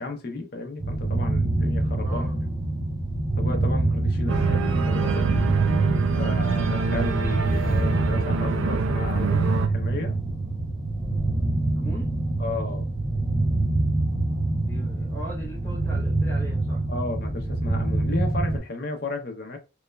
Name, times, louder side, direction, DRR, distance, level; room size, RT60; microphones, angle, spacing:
voice 1, 0.0-2.3 3.4-5.5 6.2-10.2 12.4-13.0 13.7-13.9 16.9-19.6, left 2 dB, 50° left, 0.6 m, -33 dB
sound 1, 0.8-18.6, right 2 dB, 20° right, 0.4 m, -25 dB
voice 2, 2.0-2.4 11.8-12.1 14.7-16.8, right 1 dB, 10° left, 0.7 m, -39 dB
Organ, 4.3-9.7, right 5 dB, 80° right, 0.4 m, -26 dB
3.0 x 2.0 x 2.2 m
head